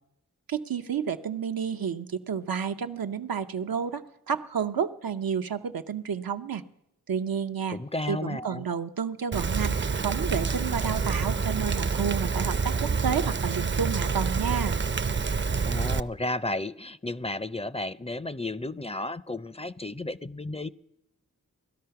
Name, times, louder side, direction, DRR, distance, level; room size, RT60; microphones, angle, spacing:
voice 1, 0.5-6.6 7.1-7.8 8.1-14.8, right 7 dB, 90° right, 7 dB, 0.7 m, -30 dB
voice 2, 7.7-8.7 15.7-20.7, left 2 dB, 20° left, 16 dB, 0.4 m, -33 dB
Rain, 9.3-16.0, right 5 dB, 35° right, 0.5 m, -27 dB
18.5 x 12.5 x 5.8 m, 0.90 s
cardioid pair, 40°, 34 cm